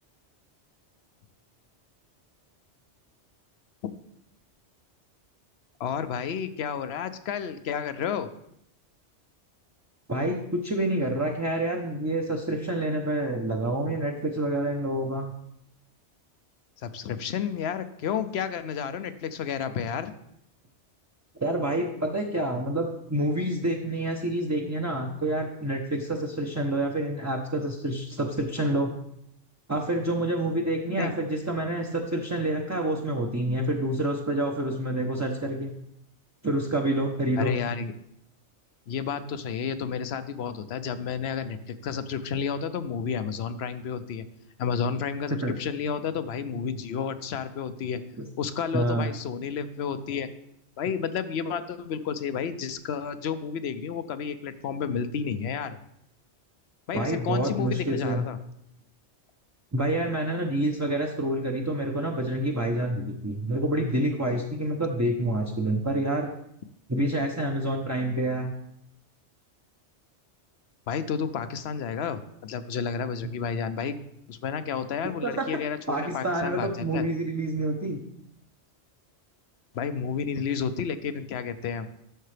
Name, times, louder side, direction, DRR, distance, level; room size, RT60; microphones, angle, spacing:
voice 1, 5.8-8.3 16.8-20.1 31.0-31.1 37.4-37.9 38.9-44.2 44.6-48.0 48.4-50.3 50.8-55.8 56.9-58.4 70.9-74.0 74.3-77.0 79.7-81.9, left 7 dB, 70° left, 12 dB, 0.9 m, -31 dB
voice 2, 10.1-15.3 21.4-28.9 29.7-35.7 36.4-37.6 45.4-45.6 48.2-48.3 48.7-49.1 56.9-58.2 59.7-66.3 66.9-68.5 75.2-75.5 75.9-78.0, right 1 dB, 20° right, 0 dB, 0.6 m, -28 dB
11.0 x 6.6 x 3.3 m, 0.75 s
omnidirectional pair, 1.2 m